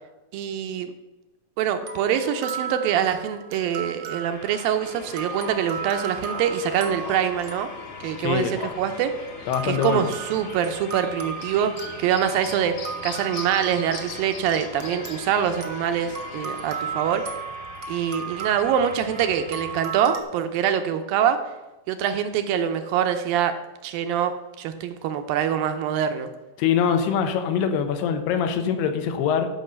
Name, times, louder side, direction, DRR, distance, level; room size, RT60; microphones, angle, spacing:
voice 1, 0.3-0.9 1.6-7.7 8.0-9.1 9.6-11.7 12.0-12.7 13.0-17.4 17.9-21.4 21.9-23.5 23.8-26.3, right 9 dB, 80° right, 8 dB, 2.2 m, -24 dB
sound 1, 1.8-8.9 9.5-20.2, right 6 dB, 60° right, 1.4 m, -36 dB
sound 2, 4.3-19.8, left 2 dB, 40° left, 1.1 m, -44 dB
sound 3, 4.8-17.3, left 5 dB, 60° left, 2.2 m, -41 dB
voice 2, 8.2-8.5 9.5-10.0 26.6-29.5, left 7 dB, 80° left, 7 dB, 3.0 m, -23 dB
13.5 x 5.3 x 7.0 m, 1.1 s
omnidirectional pair, 4.7 m